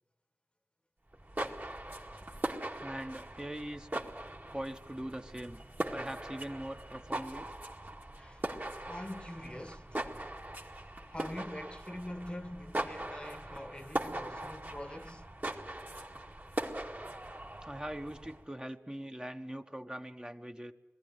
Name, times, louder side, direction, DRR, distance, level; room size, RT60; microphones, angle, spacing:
sound 1, 1.1-18.4, right 1 dB, 40° right, 2.1 m, -40 dB
voice 1, 2.8-3.9 4.5-5.6 5.9-7.5 17.6-20.7, right 1 dB, 15° right, 1.1 m, -41 dB
voice 2, 8.2-8.5 8.9-10.0 11.1-15.3, left 1 dB, 20° left, 1.1 m, -44 dB
21.0 x 15.0 x 9.4 m
wide cardioid pair, 40°, 5 cm